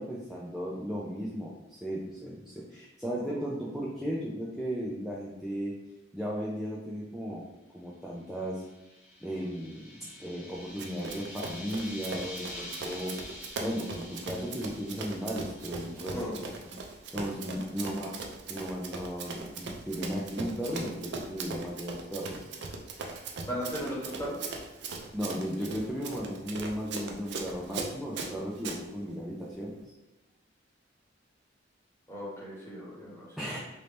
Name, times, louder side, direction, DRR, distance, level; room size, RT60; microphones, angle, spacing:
voice 1, 0.0-5.7 6.1-7.4 7.7-8.6 9.2-13.2 13.6-16.4 16.6-16.8 17.1-18.1 18.5-22.4 25.1-29.7 33.4-33.6, equal, ahead, -6 dB, 0.4 m, -35 dB
sound 1, 8.4-16.7, left 1 dB, 50° left, 1.0 m, -46 dB
Run, 10.8-28.8, right 4 dB, 65° right, 0.4 m, -40 dB
voice 2, 23.4-24.4 32.1-33.3, equal, 15° left, -6 dB, 1.2 m, -36 dB
3.1 x 2.7 x 3.3 m, 1.0 s
head